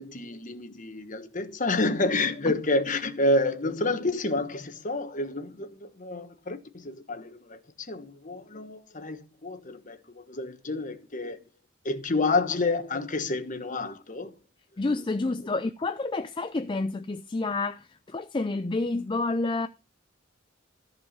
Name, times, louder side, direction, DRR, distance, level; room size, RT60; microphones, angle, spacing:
voice 1, 0.0-11.4 11.8-14.3, left 2 dB, 40° left, 1.4 m, -29 dB
voice 2, 14.8-19.7, left 3 dB, 25° left, 0.4 m, -29 dB
14.5 x 4.8 x 5.9 m
head